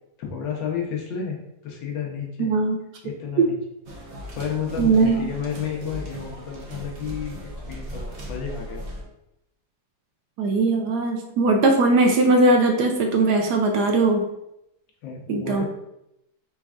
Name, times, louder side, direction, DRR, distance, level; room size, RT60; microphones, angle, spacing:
voice 1, 0.2-1.4 1.6-2.5 3.0-3.6 4.3-8.8 15.0-15.6, left 7 dB, 80° left, 0 dB, 1.6 m, -31 dB
voice 2, 2.4-2.8 3.4-3.5 4.8-5.3 10.4-14.3 15.3-15.6, right 3 dB, 75° right, 3 dB, 1.0 m, -19 dB
sound 1, 3.9-9.0, equal, 50° right, 0.9 m, -37 dB
4.6 x 4.2 x 2.4 m, 0.84 s
omnidirectional pair, 2.0 m